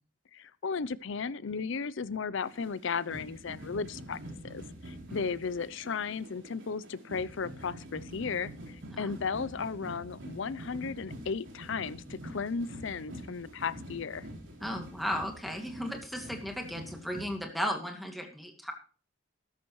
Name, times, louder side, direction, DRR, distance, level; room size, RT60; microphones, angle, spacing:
voice 1, 0.3-4.2 4.4-14.3, left 5 dB, 65° left, 19 dB, 0.6 m, -35 dB
sound 1, 2.4-17.4, equal, 65° right, 4.1 m, -46 dB
voice 2, 14.6-18.7, equal, ahead, 3 dB, 2.2 m, -35 dB
13.5 x 13.0 x 3.1 m, 0.37 s
head